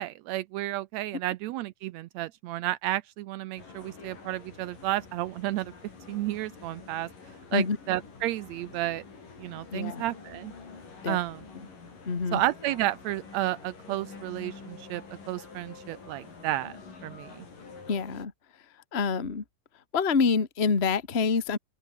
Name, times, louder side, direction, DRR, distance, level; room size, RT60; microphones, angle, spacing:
voice 1, 0.0-5.7 6.1-7.1 7.5-9.0 9.4-10.5 11.1-11.4 12.3-16.7 17.0-17.5, right 15 dB, 85° right, 1.6 m, -32 dB
sound 1, 3.6-18.3, left 4 dB, 75° left, 7.6 m, -48 dB
voice 2, 9.7-10.0 11.0-11.2 12.0-12.4 17.9-18.3 18.9-19.4 19.9-21.6, left 5 dB, 25° left, 1.6 m, -26 dB
omnidirectional pair, 3.8 m